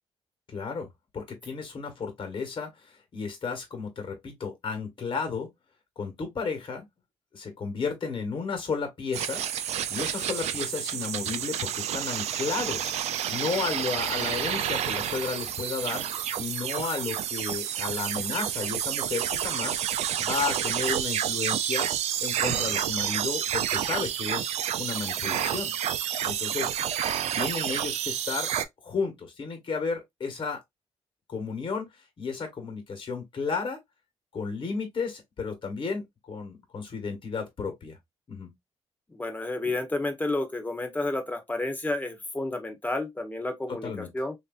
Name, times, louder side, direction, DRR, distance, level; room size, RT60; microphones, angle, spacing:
voice 1, 0.5-5.5 6.0-6.8 7.3-9.4 9.9-21.9 22.2-24.5 24.8-25.7 26.2-26.7 27.3-28.5 28.8-30.6 31.3-31.9 32.2-33.8 34.3-38.0 38.3-38.5 43.8-44.1, left 5 dB, 50° left, 1.3 m, -33 dB
sound 1, 9.1-28.6, right 10 dB, 80° right, 0.4 m, -29 dB
voice 2, 39.1-44.3, left 2 dB, 15° left, 0.9 m, -31 dB
3.2 x 2.7 x 2.4 m
cardioid pair, 95°, 11 cm